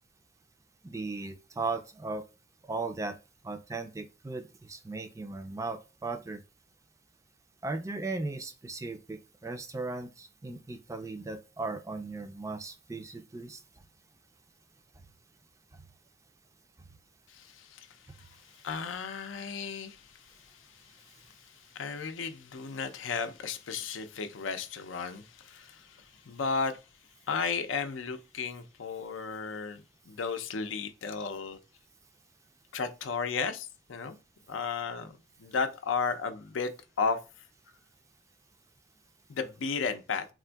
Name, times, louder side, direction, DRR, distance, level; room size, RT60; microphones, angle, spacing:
voice 1, 0.8-2.2 2.7-3.2 3.4-6.4 7.6-13.6, right 3 dB, 15° right, 0.3 m, -37 dB
voice 2, 17.3-26.8 27.3-31.6 32.7-34.2 34.5-36.7 37.0-37.2 39.3-40.3, left 5 dB, 90° left, 0.5 m, -34 dB
3.6 x 2.5 x 2.2 m
head